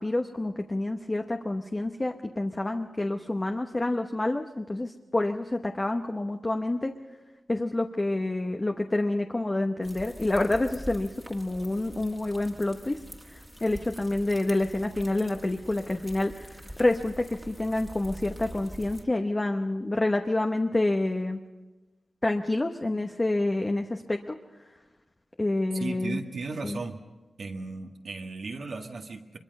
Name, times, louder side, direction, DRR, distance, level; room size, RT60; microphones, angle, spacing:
voice 1, 0.0-6.9 7.5-13.0 13.3-21.4 22.2-24.4 25.4-26.2 26.6-26.8, left 2 dB, 25° left, 4 dB, 0.9 m, -28 dB
sound 1, 9.8-19.0, equal, ahead, 1.9 m, -45 dB
voice 2, 25.8-27.0 27.4-29.4, right 3 dB, 70° right, 2 dB, 1.8 m, -36 dB
23.5 x 22.5 x 5.4 m, 1.2 s
wide cardioid pair, 100°, 0 cm